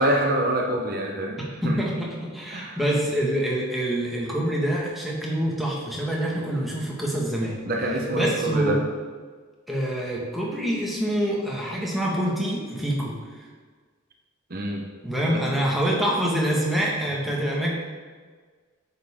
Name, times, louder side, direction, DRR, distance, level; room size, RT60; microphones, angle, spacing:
voice 1, 0.0-1.8 2.5-2.8 7.7-8.8 14.5-14.9 15.3-15.4, right 1 dB, 45° right, 0 dB, 1.1 m, -26 dB
voice 2, 1.4-7.6 8.1-8.8 9.7-13.4 15.0-17.7, equal, ahead, -4 dB, 1.5 m, -26 dB
9.2 x 6.8 x 3.7 m, 1.5 s
head